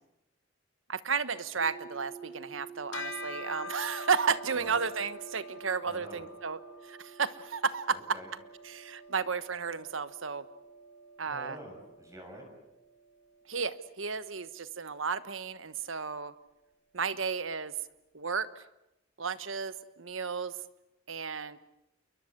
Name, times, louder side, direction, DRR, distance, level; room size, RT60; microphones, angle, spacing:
voice 1, 0.9-8.0 8.6-10.5 11.2-11.6 13.5-16.3 16.9-17.7 18.1-18.6 19.2-20.6 21.1-21.6, right 5 dB, 85° right, 13 dB, 1.3 m, -33 dB
sound 1, 1.6-13.5, right 6 dB, 65° right, 3.7 m, -52 dB
Bell, 2.9-12.6, left 1 dB, 80° left, 2.5 m, -46 dB
voice 2, 5.9-6.2 7.9-8.3 11.3-12.4, equal, 15° right, 3 dB, 6.4 m, -47 dB
28.5 x 22.5 x 8.0 m, 0.91 s
head